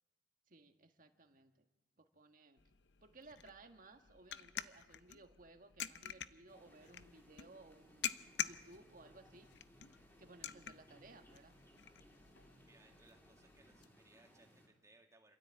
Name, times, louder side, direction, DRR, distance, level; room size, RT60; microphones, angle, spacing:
voice 1, 0.5-1.6 2.0-2.6 3.0-9.5 10.2-11.5, right 2 dB, 50° right, 6 dB, 1.6 m, -60 dB
sound 1, 2.6-13.9, left 10 dB, 70° left, 0.7 m, -48 dB
sound 2, 6.5-14.7, equal, 10° left, 3.2 m, -65 dB
voice 2, 12.6-15.4, right 2 dB, 15° right, 2 dB, 2.1 m, -67 dB
27.0 x 13.0 x 8.8 m, 1.1 s
head